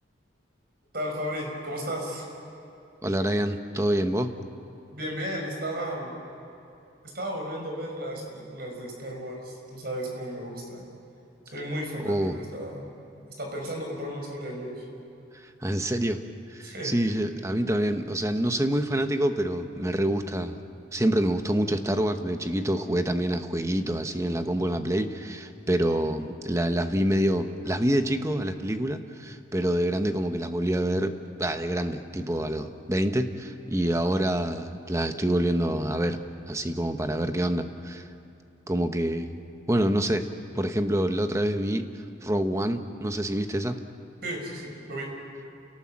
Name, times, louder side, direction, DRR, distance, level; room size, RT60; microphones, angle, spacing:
voice 1, 0.9-2.3 4.9-6.2 7.0-10.9 11.5-12.9 13.4-14.8 16.6-17.0 44.2-45.1, equal, 50° right, 1 dB, 5.2 m, -34 dB
voice 2, 3.0-4.3 12.0-12.4 15.6-16.2 16.5-20.6 20.9-31.1 31.4-36.2 36.5-38.1 38.7-39.4 39.7-40.2 40.5-41.9 42.2-43.8, right 1 dB, 15° right, 7 dB, 0.9 m, -26 dB
28.5 x 18.0 x 7.5 m, 2.7 s
head